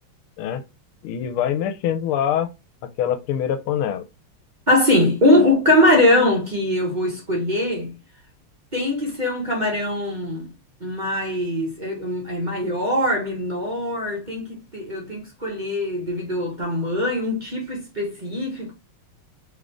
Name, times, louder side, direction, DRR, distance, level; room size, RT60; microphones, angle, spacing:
voice 1, 1.0-2.5 3.0-4.0 5.3-5.5, left 9 dB, 85° left, 1.5 m, -24 dB
voice 2, 4.7-7.9 8.7-10.5 10.8-18.7, left 1 dB, 25° right, 1.3 m, -21 dB
3.8 x 3.6 x 3.4 m
omnidirectional pair, 2.3 m